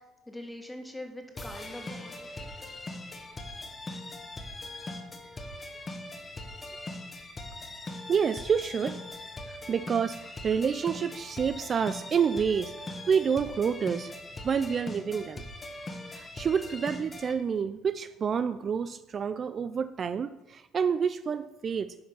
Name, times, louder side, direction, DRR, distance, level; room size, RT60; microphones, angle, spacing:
voice 1, 0.0-2.5, left 1 dB, 10° left, 3 dB, 2.0 m, -43 dB
sound 1, 1.3-17.3, left 2 dB, 25° left, 1.5 m, -41 dB
voice 2, 8.1-9.0 9.5-12.8 13.1-14.1 14.4-15.4 16.1-21.9, right 6 dB, 40° right, 12 dB, 0.4 m, -28 dB
10.0 x 5.1 x 7.1 m, 1.0 s
supercardioid pair, 80°, 0 cm